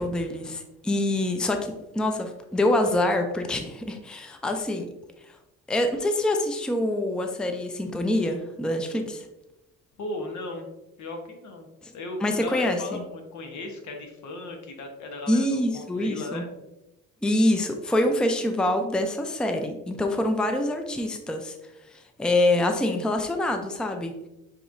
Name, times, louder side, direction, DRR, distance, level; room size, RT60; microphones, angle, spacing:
voice 1, 0.0-4.9 5.7-9.3 11.8-11.9 12.2-13.0 15.3-16.4 17.2-21.6 21.9-24.1, left 1 dB, 5° left, 5 dB, 0.4 m, -25 dB
voice 2, 10.0-10.7 11.0-11.7 11.9-16.5, left 2 dB, 70° left, 4 dB, 1.0 m, -36 dB
6.7 x 3.0 x 2.6 m, 0.94 s
cardioid pair, 90°, 30 cm